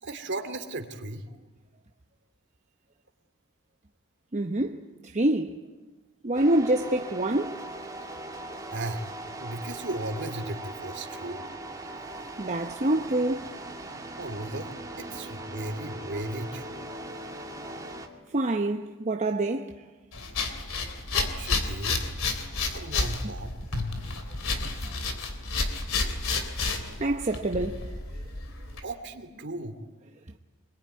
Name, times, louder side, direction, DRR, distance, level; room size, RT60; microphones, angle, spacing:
voice 1, 0.0-1.2 8.7-9.1 9.4-11.4 14.2-16.9 21.1-22.0 22.7-23.6 28.8-29.9, right 2 dB, 55° right, 2.7 m, -36 dB
voice 2, 4.3-5.6 6.2-7.6 12.4-13.5 18.3-19.7 27.0-28.2, right 1 dB, 35° right, 0.9 m, -26 dB
sound 1, 6.3-18.1, right 1 dB, 15° right, 2.5 m, -40 dB
sound 2, 20.1-28.8, left 3 dB, 70° left, 3.2 m, -31 dB
25.5 x 22.0 x 9.6 m
head